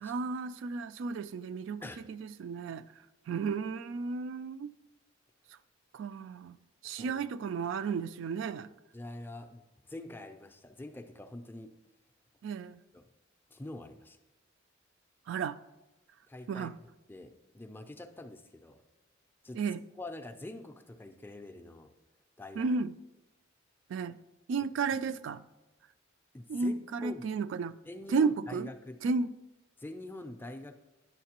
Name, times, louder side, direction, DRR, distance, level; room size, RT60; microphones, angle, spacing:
voice 1, 0.0-1.8 2.1-2.8 3.3-4.7 5.9-6.6 6.8-8.7 12.4-12.8 15.3-15.6 16.5-16.7 19.5-19.8 22.6-22.9 23.9-24.2 24.5-25.4 26.5-27.7 28.1-28.7 29.0-29.3, right 4 dB, 65° right, 0.3 m, -33 dB
voice 2, 6.8-7.2 8.9-11.8 12.9-13.1 13.5-14.2 16.3-16.7 17.1-18.8 19.4-19.6 20.0-21.9 22.4-22.6 26.3-27.2 27.9-29.0 29.8-30.8, left 2 dB, 10° left, 0.4 m, -45 dB
10.0 x 6.5 x 2.9 m
head